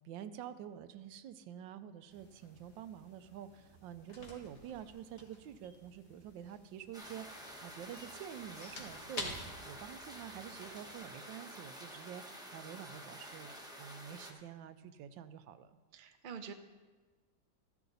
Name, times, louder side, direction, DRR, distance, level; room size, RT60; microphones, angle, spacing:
voice 1, 0.0-15.8, right 9 dB, 85° right, 12 dB, 1.3 m, -48 dB
sound 1, 2.1-11.0, left 2 dB, 40° left, 1.8 m, -50 dB
sound 2, 6.9-14.3, equal, 5° right, 0.8 m, -50 dB
voice 2, 15.9-16.5, right 6 dB, 55° right, 7 dB, 0.5 m, -46 dB
13.5 x 10.5 x 4.0 m, 1.3 s
omnidirectional pair, 2.0 m